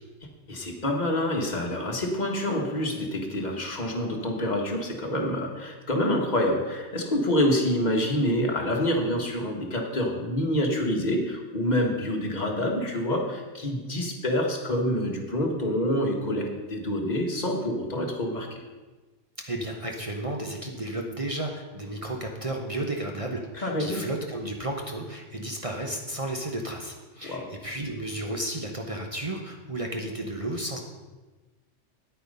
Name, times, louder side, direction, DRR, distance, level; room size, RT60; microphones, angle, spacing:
voice 1, 0.5-18.6 23.5-24.0 27.2-27.5, left 1 dB, 35° left, 1 dB, 1.6 m, -27 dB
voice 2, 19.5-30.8, right 1 dB, 30° right, 2 dB, 0.9 m, -33 dB
9.3 x 8.7 x 5.4 m, 1.2 s
omnidirectional pair, 1.3 m